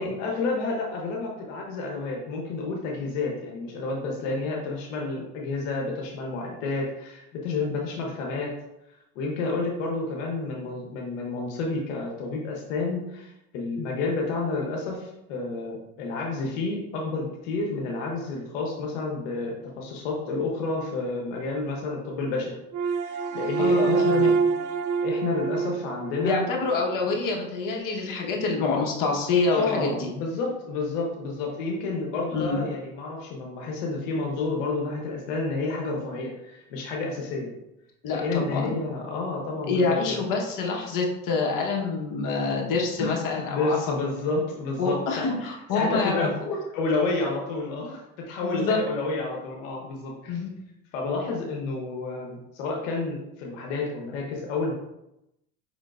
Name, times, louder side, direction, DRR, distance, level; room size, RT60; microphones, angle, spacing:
voice 1, 0.0-8.5 8.9-24.4 25.0-26.5 29.4-37.5 38.1-40.2 43.0-46.3 46.7-50.4 50.9-54.7, left 3 dB, 85° left, -1 dB, 0.9 m, -30 dB
sound 1, 22.7-27.0, right 5 dB, 55° right, 0.5 m, -26 dB
voice 2, 23.6-24.3 26.2-30.1 32.3-32.6 38.0-38.7 39.7-44.0 44.8-46.6 48.4-48.8 50.3-50.5, left 4 dB, 55° left, 0 dB, 1.2 m, -26 dB
5.3 x 3.6 x 2.4 m, 0.88 s
supercardioid pair, 90°, 38 cm